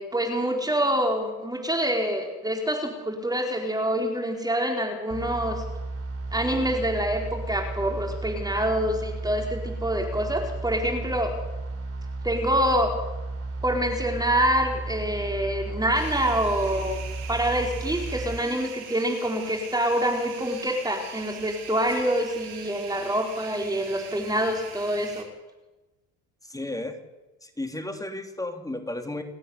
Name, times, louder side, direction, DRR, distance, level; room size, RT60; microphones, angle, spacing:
voice 1, 0.0-5.6 6.3-11.3 12.2-12.9 13.6-25.2, equal, 10° right, 2 dB, 4.7 m, -26 dB
sound 1, 5.1-18.4, right 3 dB, 35° right, 3.4 m, -34 dB
sound 2, 15.9-25.2, right 7 dB, 80° right, 3.8 m, -42 dB
voice 2, 26.4-27.0 27.4-29.2, left 2 dB, 10° left, 6 dB, 3.1 m, -33 dB
29.5 x 9.8 x 9.8 m, 1.1 s
supercardioid pair, 75°, 41 cm